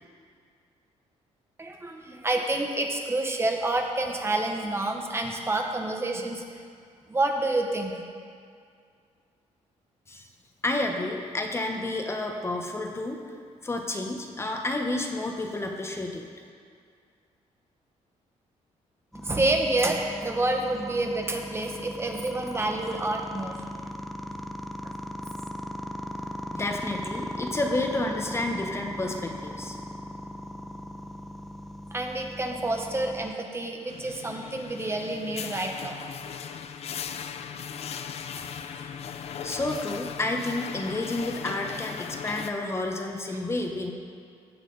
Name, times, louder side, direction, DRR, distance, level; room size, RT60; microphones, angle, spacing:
voice 1, 1.6-6.4 7.1-7.9 19.2-23.5 31.9-36.0 38.4-38.5, right 2 dB, 20° right, 2 dB, 0.9 m, -28 dB
voice 2, 10.6-13.2 13.6-16.3 26.5-29.7 39.4-43.9, left 2 dB, 20° left, 3 dB, 0.9 m, -30 dB
sound 1, 19.1-33.3, equal, ahead, 0.5 m, -38 dB
sound 2, 33.9-42.5, left 7 dB, 55° left, 0.5 m, -38 dB
15.5 x 7.4 x 3.9 m, 2.2 s
cardioid pair, 120°, 12 cm